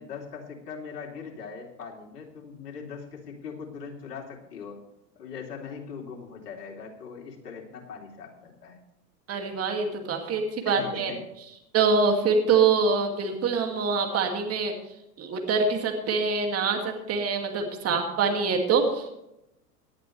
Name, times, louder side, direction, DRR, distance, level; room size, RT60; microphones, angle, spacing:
voice 1, 0.0-4.8 5.1-8.8 10.6-11.2, left 6 dB, 75° left, -1 dB, 3.4 m, -40 dB
voice 2, 9.3-11.1 11.7-14.7 15.2-19.1, right 4 dB, 30° right, 3 dB, 2.4 m, -25 dB
18.0 x 11.0 x 3.4 m, 0.87 s
hypercardioid pair, 105°, 48 cm